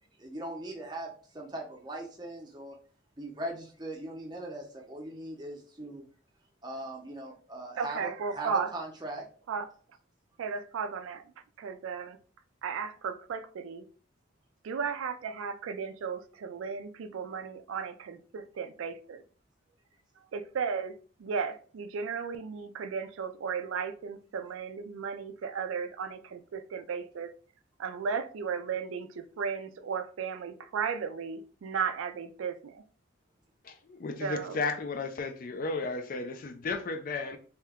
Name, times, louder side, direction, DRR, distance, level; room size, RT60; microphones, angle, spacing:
voice 1, 0.2-2.8 3.2-6.1 6.6-9.2, right 1 dB, 20° right, 0.6 m, -40 dB
voice 2, 7.8-8.7 9.5-9.7 10.4-11.2 11.6-12.2 12.6-13.8 14.6-19.2 20.3-20.9 21.2-27.3 27.8-32.8 34.2-34.6, right 6 dB, 80° right, 0.3 m, -35 dB
voice 3, 33.6-37.4, left 3 dB, 40° left, 0.3 m, -34 dB
2.8 x 2.2 x 3.4 m
head